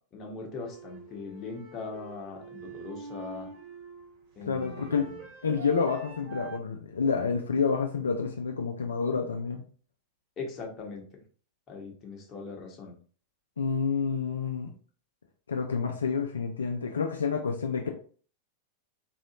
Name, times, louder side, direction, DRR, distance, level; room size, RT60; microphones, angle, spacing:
voice 1, 0.1-3.5 4.4-5.2 10.4-11.0 11.7-12.9, left 4 dB, 30° left, 0 dB, 1.1 m, -40 dB
sound 1, 0.6-6.6, right 4 dB, 50° right, 0.9 m, -45 dB
voice 2, 4.5-5.1 5.4-9.6 13.6-14.7 15.5-17.9, left 5 dB, 70° left, 3 dB, 0.4 m, -29 dB
3.8 x 3.0 x 2.8 m, 0.42 s
figure-of-eight pair, 90°, 0 cm